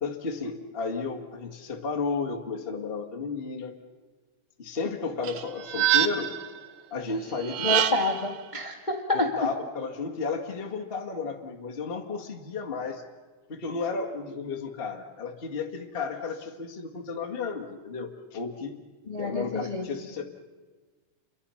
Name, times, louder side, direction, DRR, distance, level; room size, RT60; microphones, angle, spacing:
voice 1, 0.0-3.7 4.6-6.3 6.9-7.8 9.1-13.0 13.5-18.8 19.2-20.3, left 4 dB, 65° left, 2 dB, 0.5 m, -33 dB
sound 1, 5.2-6.5 7.4-8.3, right 11 dB, 75° right, 2.6 m, -25 dB
voice 2, 7.6-9.4 19.1-19.9, left 2 dB, 30° left, 3 dB, 0.8 m, -28 dB
29.5 x 23.5 x 5.7 m, 1.3 s
omnidirectional pair, 4.5 m